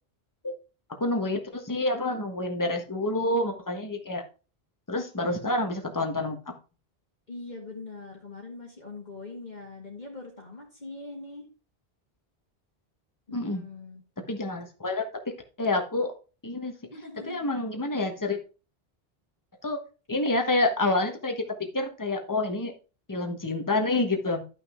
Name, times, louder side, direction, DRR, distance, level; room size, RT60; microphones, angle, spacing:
voice 1, 1.0-4.2 4.9-6.4 13.3-13.6 14.3-15.2 15.6-16.1 16.4-16.7 17.3-18.4 19.6-19.8 20.1-22.7 23.1-24.4, left 2 dB, 20° left, 4 dB, 1.3 m, -28 dB
voice 2, 7.3-11.5 13.3-14.0 16.8-17.4 18.2-18.3, left 3 dB, 45° left, -2 dB, 1.9 m, -42 dB
11.5 x 5.9 x 3.6 m, 0.33 s
omnidirectional pair, 1.0 m